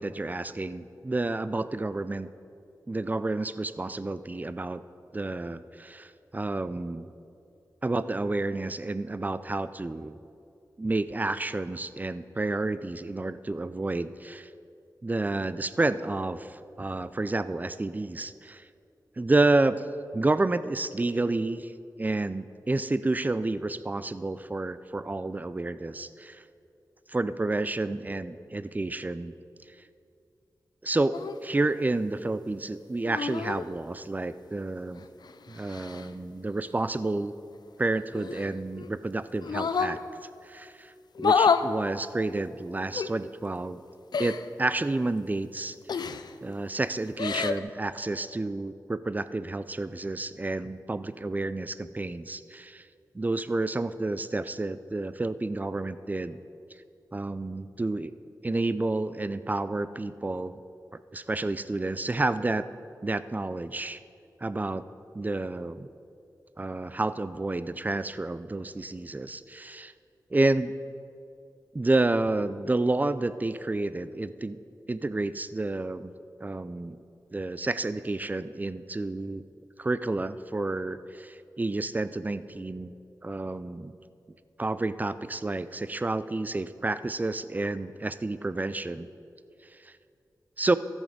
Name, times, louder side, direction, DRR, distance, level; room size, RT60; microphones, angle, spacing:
voice 1, 0.0-2.3 2.9-4.8 5.1-7.1 7.8-10.2 10.8-14.5 15.0-18.6 19.2-19.9 20.1-21.7 22.0-26.4 27.1-29.4 30.8-31.2 31.4-35.1 35.5-37.4 37.8-40.0 40.4-40.9 41.2-43.8 44.2-46.1 46.4-52.9 53.1-56.4 57.1-58.1 58.4-60.5 60.9-62.7 63.0-64.0 64.4-64.8 65.1-65.9 66.6-69.9 70.3-70.7 71.7-74.6 74.9-76.1 76.4-77.0 77.3-79.4 79.8-82.9 83.2-83.9 84.6-89.1 89.8-89.9 90.6-90.8, right 2 dB, 25° right, 14 dB, 0.4 m, -30 dB
sound 1, 31.1-31.4 33.0-33.6 35.0-36.1 38.1-38.9 39.4-40.0 41.1-41.7 42.9-43.1 44.1-44.5 45.9-46.3 47.0-47.6, left 5 dB, 75° left, 0.4 m, -28 dB
14.5 x 6.3 x 5.2 m, 2.5 s
cardioid pair, 60°, 7 cm